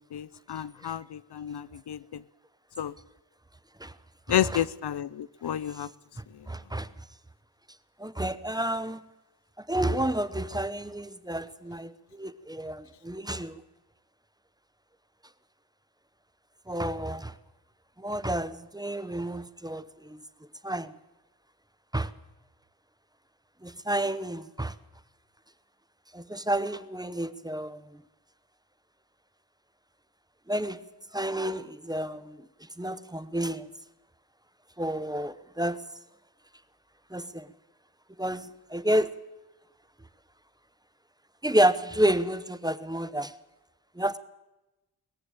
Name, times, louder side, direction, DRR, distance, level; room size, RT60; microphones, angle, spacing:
voice 1, 0.0-2.2 2.8-2.9 4.3-5.9 6.3-6.5, left 11 dB, 80° left, 0.7 m, -31 dB
voice 2, 6.2-6.9 8.0-9.0 9.6-13.6 16.7-17.3 18.0-20.2 20.6-20.9 21.9-22.1 23.6-24.7 26.1-28.0 30.5-30.8 31.1-33.7 34.8-35.8 37.1-37.5 38.2-39.1 41.4-43.3 43.9-44.2, right 1 dB, 10° right, 0.8 m, -30 dB
20.0 x 14.5 x 8.9 m
wide cardioid pair, 135°, 40 cm